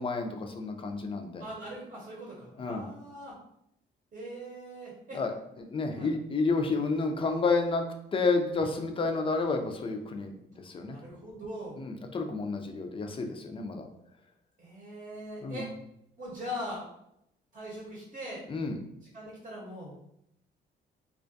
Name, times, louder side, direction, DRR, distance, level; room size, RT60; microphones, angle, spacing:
voice 1, 0.0-1.4 2.6-2.8 5.1-7.9 8.1-11.0 11.8-13.8 15.4-15.7 18.5-18.8, left 3 dB, 25° left, 4 dB, 0.4 m, -30 dB
voice 2, 1.4-3.4 4.1-5.2 5.9-6.1 10.8-11.8 14.6-15.7 16.2-16.8 17.5-18.4 19.0-20.0, equal, 40° right, -4 dB, 0.8 m, -41 dB
2.4 x 2.2 x 2.5 m, 0.78 s
cardioid pair, 90°, 20 cm